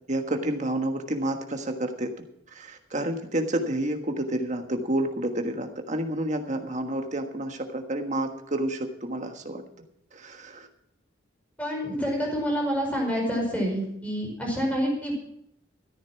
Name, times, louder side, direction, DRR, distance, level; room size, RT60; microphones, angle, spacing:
voice 1, 0.1-2.1 2.5-9.6 10.1-10.7, right 1 dB, 35° right, 5 dB, 1.5 m, -29 dB
voice 2, 11.6-15.2, equal, 5° left, -1 dB, 4.9 m, -27 dB
13.5 x 10.5 x 5.8 m, 0.72 s
head